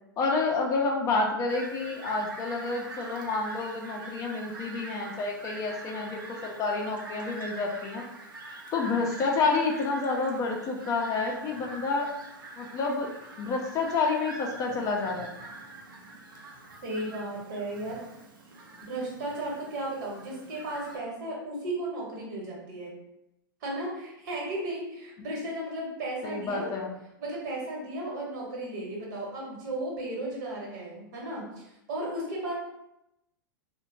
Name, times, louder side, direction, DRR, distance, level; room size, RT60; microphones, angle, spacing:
voice 1, 0.2-8.0 8.7-12.1 12.6-13.1 13.4-15.3 26.2-27.0, left 3 dB, 30° left, 0 dB, 0.5 m, -29 dB
Fowl, 1.5-21.0, right 2 dB, 75° right, 0.6 m, -44 dB
voice 2, 16.8-18.0 18.8-22.9 23.6-26.7 27.2-32.6, right 1 dB, 55° right, -3 dB, 1.1 m, -35 dB
2.7 x 2.1 x 2.6 m, 0.85 s
hypercardioid pair, 105°, 12 cm